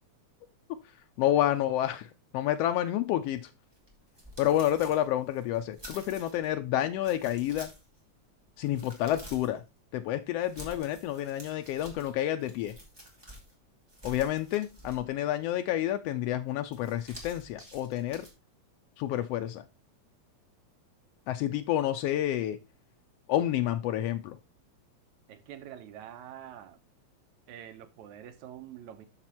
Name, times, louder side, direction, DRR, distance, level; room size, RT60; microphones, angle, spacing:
voice 1, 1.2-2.1 2.3-3.5 4.4-7.7 8.6-9.6 9.9-12.7 14.0-18.3 19.0-19.6 21.3-22.6 23.3-24.4, left 12 dB, 90° left, 1.4 m, -29 dB
sound 1, 3.7-6.5 7.0-8.0 8.4-9.6 10.4-13.5 13.9-15.3 16.7-18.3, equal, 10° right, 1.7 m, -49 dB
voice 2, 25.3-26.8 27.5-29.1, right 10 dB, 80° right, 2.3 m, -46 dB
6.6 x 6.0 x 4.3 m
omnidirectional pair, 3.3 m